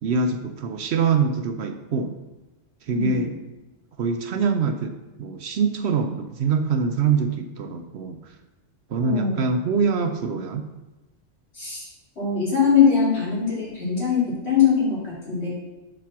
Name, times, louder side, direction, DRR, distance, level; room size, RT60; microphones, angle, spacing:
voice 1, 0.0-2.2 2.8-3.3 4.0-8.4 8.9-10.7, right 5 dB, 65° right, 7 dB, 0.8 m, -24 dB
voice 2, 9.0-9.4 11.5-11.9 12.2-15.5, left 6 dB, 55° left, -7 dB, 3.3 m, -21 dB
7.2 x 5.2 x 5.9 m, 1.1 s
omnidirectional pair, 1.3 m